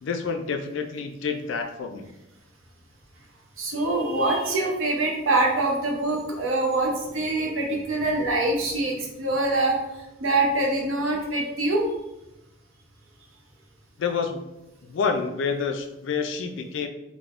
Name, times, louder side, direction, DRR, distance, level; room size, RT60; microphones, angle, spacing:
voice 1, 0.0-2.1 14.0-14.4 14.9-16.9, left 5 dB, 60° left, 5 dB, 0.3 m, -28 dB
voice 2, 3.6-9.8 10.2-11.8, right 2 dB, 75° right, 0 dB, 0.6 m, -24 dB
3.4 x 2.0 x 2.4 m, 0.92 s
head